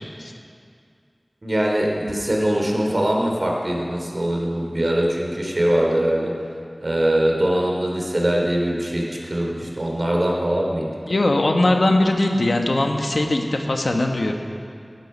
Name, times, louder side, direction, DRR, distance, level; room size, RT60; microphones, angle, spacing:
voice 1, 1.4-6.3 6.8-10.9, right 1 dB, 55° right, -1 dB, 2.8 m, -22 dB
voice 2, 11.0-14.3, left 2 dB, 85° left, 3 dB, 1.2 m, -20 dB
16.0 x 11.0 x 5.5 m, 2.3 s
wide cardioid pair, 50°, 0 cm